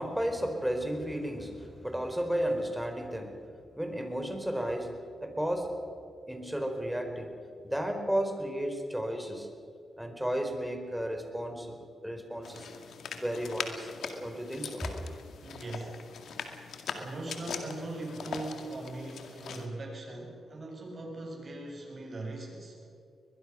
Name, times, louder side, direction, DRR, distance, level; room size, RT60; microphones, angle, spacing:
voice 1, 0.0-3.5 3.8-5.8 6.3-7.4 7.6-9.5 10.0-12.7 13.2-13.9 14.2-14.9, equal, 5° right, 5 dB, 4.4 m, -33 dB
sound 1, 12.4-19.7, left 6 dB, 75° left, 2.1 m, -41 dB
voice 2, 15.4-16.0 16.9-22.8, right 2 dB, 50° right, 0 dB, 7.6 m, -40 dB
22.5 x 21.5 x 6.3 m, 2.5 s
cardioid pair, 60°, 0 cm